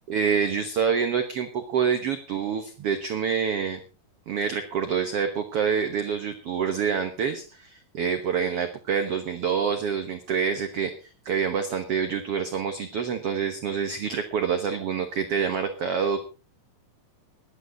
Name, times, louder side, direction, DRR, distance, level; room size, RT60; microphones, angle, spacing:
voice 1, 0.1-3.8 4.3-16.2, right 6 dB, 60° right, 8 dB, 1.7 m, -27 dB
18.0 x 12.0 x 3.9 m, 0.34 s
omnidirectional pair, 4.0 m